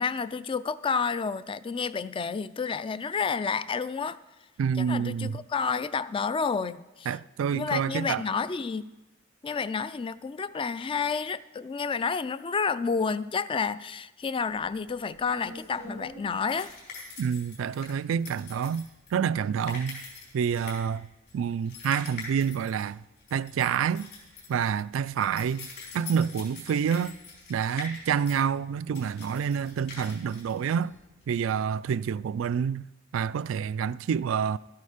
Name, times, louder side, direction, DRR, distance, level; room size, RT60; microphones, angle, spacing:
voice 1, 0.0-4.2 4.8-7.1 7.5-8.8 9.4-16.7, left 5 dB, 25° left, 0.3 m, -30 dB
voice 2, 4.6-5.4 7.1-8.2 17.2-18.8 19.1-20.0 20.3-21.1 21.3-23.0 23.3-24.1 24.5-25.7 25.9-27.1 27.5-30.9 31.3-32.8 33.1-34.6, right 7 dB, 90° right, 0.3 m, -28 dB
sound 1, 14.6-31.3, left 4 dB, 55° left, 4.7 m, -45 dB
13.0 x 9.5 x 5.0 m
head